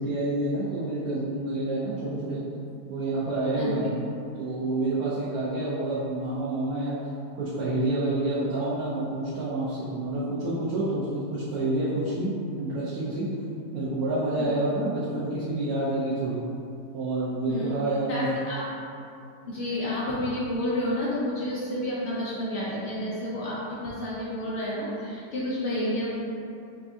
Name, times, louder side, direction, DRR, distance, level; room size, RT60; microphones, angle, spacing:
voice 1, 0.0-2.4 2.9-3.9 4.3-7.0 7.3-13.3 13.7-16.4 16.9-18.3, right 2 dB, 70° right, -8 dB, 1.0 m, -28 dB
voice 2, 18.1-18.6 19.5-26.1, left 1 dB, 85° left, -7 dB, 0.6 m, -30 dB
4.2 x 2.3 x 2.5 m, 2.6 s
omnidirectional pair, 1.8 m